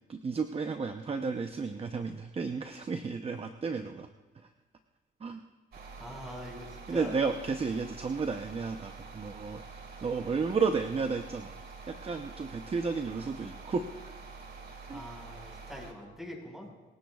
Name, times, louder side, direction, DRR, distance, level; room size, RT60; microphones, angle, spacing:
voice 1, 0.1-4.1 4.3-4.5 5.2-5.4 6.9-9.6 10.0-11.5 11.9-13.9 14.9-15.1, right 4 dB, 30° right, 6 dB, 0.7 m, -32 dB
sound 1, 5.7-15.9, right 4 dB, 55° right, 2.3 m, -47 dB
voice 2, 6.0-7.1 14.9-16.7, equal, ahead, 0 dB, 5.3 m, -44 dB
26.5 x 16.5 x 2.4 m, 1.2 s
cardioid pair, 90°, 20 cm